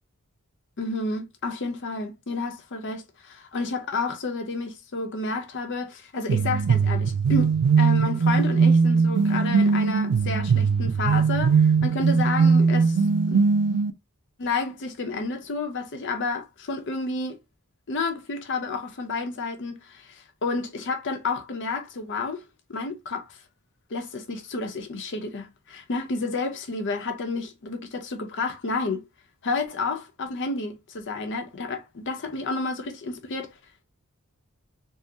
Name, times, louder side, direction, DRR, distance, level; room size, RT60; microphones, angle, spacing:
voice 1, 0.8-13.0 13.3-13.4 14.4-17.4 17.9-23.4 23.9-29.0 29.4-33.5, left 3 dB, 55° left, 0.7 m, -30 dB
sound 1, 6.3-13.9, right 5 dB, 80° right, 0.4 m, -20 dB
3.6 x 2.0 x 2.6 m
head